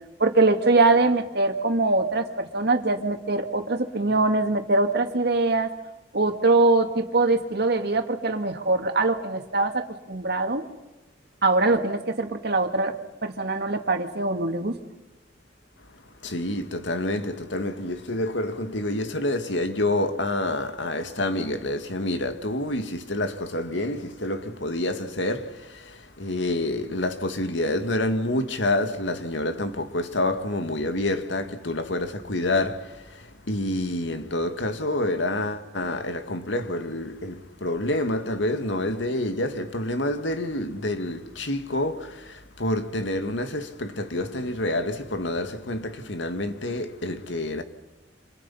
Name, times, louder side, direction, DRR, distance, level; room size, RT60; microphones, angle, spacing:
voice 1, 0.2-5.7 6.1-10.6 11.4-12.9 13.2-14.8, right 2 dB, 60° right, 2.3 m, -23 dB
voice 2, 16.2-47.6, left 1 dB, 85° left, 2.2 m, -28 dB
30.0 x 26.5 x 5.7 m
head